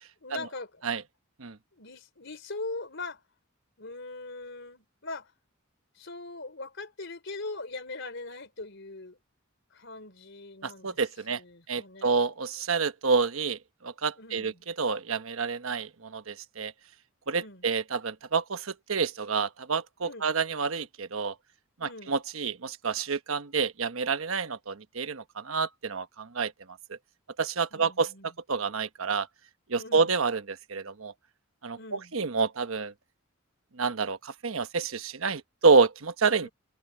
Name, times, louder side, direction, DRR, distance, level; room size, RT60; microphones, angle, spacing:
voice 1, 0.2-1.0 1.7-3.2 3.8-5.3 5.9-9.2 9.7-11.0 11.3-12.2 14.2-14.6 17.4-17.7 20.0-20.3 21.8-22.2 27.7-28.3 29.8-30.2 31.7-32.1 36.4-36.5, left 3 dB, 60° left, 4.3 m, -41 dB
voice 2, 10.6-11.4 11.7-16.7 17.3-21.3 21.8-26.8 27.4-28.1 28.5-29.3 29.7-31.1 31.6-32.9 33.7-36.5, right 4 dB, 75° right, 1.1 m, -28 dB
head